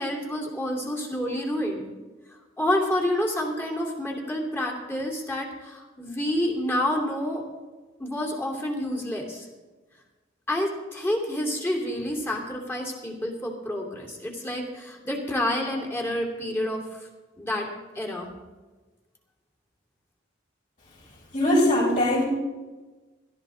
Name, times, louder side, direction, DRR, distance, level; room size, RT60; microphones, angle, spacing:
voice 1, 0.0-1.9 2.6-7.4 8.0-9.5 10.5-17.1 17.4-17.7 17.9-18.3, left 1 dB, 15° left, -1 dB, 2.8 m, -28 dB
voice 2, 21.3-22.2, left 1 dB, 40° left, -9 dB, 5.5 m, -21 dB
17.0 x 13.0 x 4.0 m, 1.2 s
head